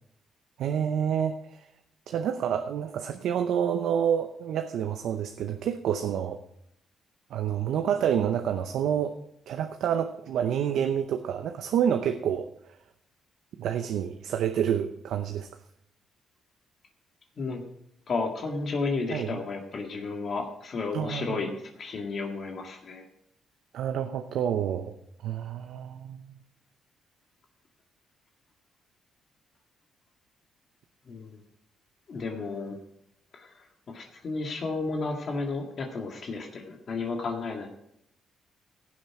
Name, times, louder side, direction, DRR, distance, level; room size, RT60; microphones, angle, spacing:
voice 1, 0.6-1.4 2.1-6.4 7.3-9.1 9.5-12.5 13.6-15.5 19.1-19.3 20.9-21.4 23.7-24.9 25.2-26.4, right 9 dB, 75° right, 7 dB, 0.7 m, -28 dB
voice 2, 18.1-21.5 21.8-23.0 31.1-31.4 32.1-32.8 33.3-33.5 33.9-37.7, left 3 dB, 50° left, 2 dB, 1.9 m, -32 dB
16.0 x 7.4 x 4.8 m, 0.75 s
cardioid pair, 90°, 0 cm